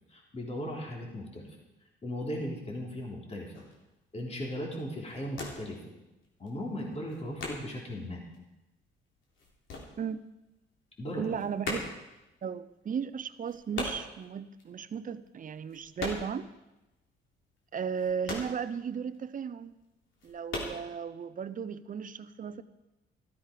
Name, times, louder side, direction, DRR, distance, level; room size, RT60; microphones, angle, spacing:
voice 1, 0.1-1.6 2.0-3.5 4.1-5.8 6.4-8.2 11.0-11.4, equal, 30° left, -2 dB, 3.6 m, -37 dB
sound 1, 3.5-3.8 4.3-4.6 4.9-5.8 6.1-8.0 8.3-10.6 10.8-16.5 16.8-16.9 17.3-19.2 19.6-19.7 20.1-20.8, left 2 dB, 75° left, 3.5 m, -40 dB
voice 2, 11.2-11.9 12.4-16.5 17.7-19.8 20.2-22.6, right 7 dB, 45° right, 13 dB, 0.8 m, -35 dB
14.0 x 13.0 x 5.2 m, 0.99 s
cardioid pair, 90°, 20 cm